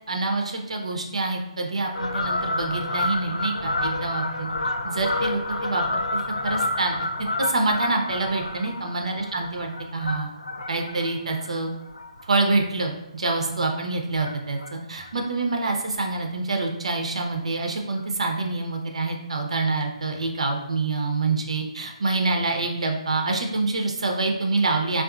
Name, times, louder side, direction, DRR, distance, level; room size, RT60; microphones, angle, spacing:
voice 1, 0.1-4.5 4.8-7.1 7.4-10.3 10.7-11.7 12.3-25.0, right 3 dB, 75° right, 2 dB, 0.5 m, -26 dB
Fowl, 1.9-12.7 13.2-13.4 14.1-14.7 15.0-15.1 15.3-15.4 15.7-15.8 16.2-16.3 17.3-17.4 18.0-18.1, left 2 dB, 85° left, 0.3 m, -29 dB
3.6 x 2.4 x 2.3 m, 0.92 s
figure-of-eight pair, 140°, 3 cm